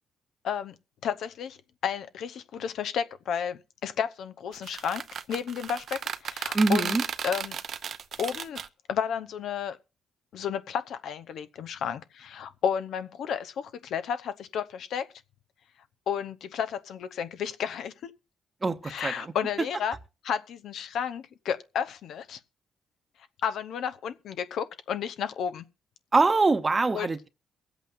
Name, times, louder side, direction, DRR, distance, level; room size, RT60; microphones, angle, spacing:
voice 1, 0.4-0.7 1.0-1.6 1.8-7.0 7.2-7.6 8.2-8.6 8.9-9.8 10.3-15.1 16.1-18.1 18.8-19.9 20.2-22.4 23.4-25.6 26.9-27.1, left 8 dB, 70° left, 0.8 m, -32 dB
sound 1, 4.5-8.7, right 7 dB, 60° right, 0.6 m, -34 dB
voice 2, 6.5-7.0 18.6-19.3 26.1-27.3, right 3 dB, 25° right, 0.9 m, -24 dB
23.0 x 8.1 x 2.6 m
cardioid pair, 90°, 0 cm